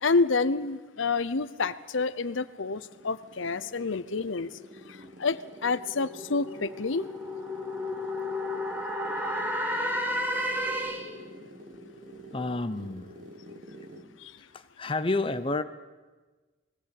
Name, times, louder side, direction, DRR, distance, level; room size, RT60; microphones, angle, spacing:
voice 1, 0.0-4.5 5.2-7.1 14.2-14.3, left 4 dB, 75° left, 14 dB, 0.8 m, -28 dB
sound 1, 2.4-14.2, equal, 45° right, 1.9 m, -48 dB
sound 2, 5.1-11.3, left 1 dB, 10° right, 1.5 m, -32 dB
voice 2, 12.3-13.2 14.5-15.6, left 2 dB, 25° left, 9 dB, 0.7 m, -30 dB
22.0 x 16.0 x 8.5 m, 1.3 s
head